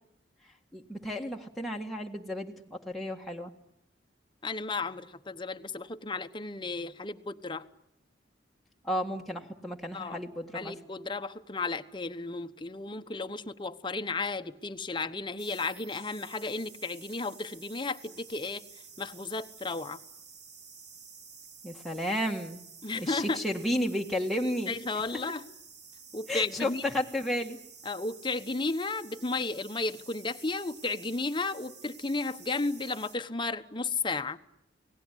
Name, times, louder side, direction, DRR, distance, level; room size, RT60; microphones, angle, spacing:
voice 1, 0.7-3.5 8.8-10.7 21.6-22.6 22.9-24.7 26.3-27.6, equal, ahead, 1.7 m, -32 dB
voice 2, 4.4-7.6 9.9-10.2 10.5-18.6 19.0-20.0 22.8-23.4 24.7-25.4 26.1-26.8 27.8-34.4, left 3 dB, 25° left, 1.1 m, -33 dB
sound 1, 15.4-33.2, right 5 dB, 60° right, 3.7 m, -51 dB
28.5 x 19.0 x 10.0 m
head